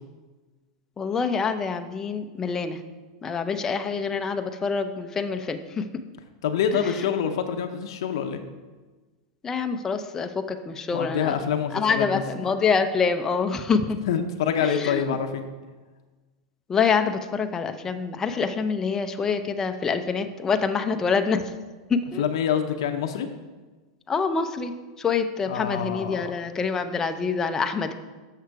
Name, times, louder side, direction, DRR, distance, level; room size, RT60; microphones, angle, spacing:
voice 1, 1.0-2.8 3.2-5.9 6.7-6.9 9.4-11.4 11.7-14.0 14.6-15.1 16.7-21.5 21.9-22.3 24.1-24.7 25.0-27.9, left 5 dB, 20° left, 7 dB, 0.5 m, -26 dB
voice 2, 6.4-8.4 10.9-12.0 12.4-12.5 14.1-15.5 22.2-23.3 25.5-26.3, left 8 dB, 75° left, 6 dB, 0.7 m, -26 dB
6.6 x 6.4 x 4.6 m, 1.3 s
supercardioid pair, 125°, 3 cm